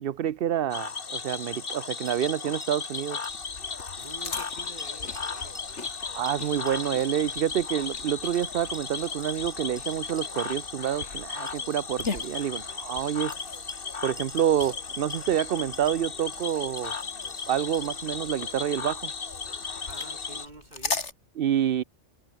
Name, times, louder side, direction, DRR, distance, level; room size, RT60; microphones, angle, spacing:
voice 1, 0.0-3.2 6.1-13.3 14.0-16.9 17.5-19.1 21.4-21.8, right 10 dB, 60° right, 0.8 m, -28 dB
Cricket / Frog, 0.7-20.5, left 5 dB, 50° left, 1.6 m, -36 dB
sound 1, 2.0-3.5 3.8-3.9 4.8-6.0 6.3-7.4 8.3-10.5 11.5-12.5 13.3-15.4 15.7-18.1, equal, 5° right, 5.4 m, -52 dB
sound 2, 3.3-21.1, left 4 dB, 75° left, 2.7 m, -41 dB
voice 2, 4.0-6.2 19.8-21.1, right 2 dB, 40° right, 2.8 m, -48 dB
omnidirectional pair, 1.2 m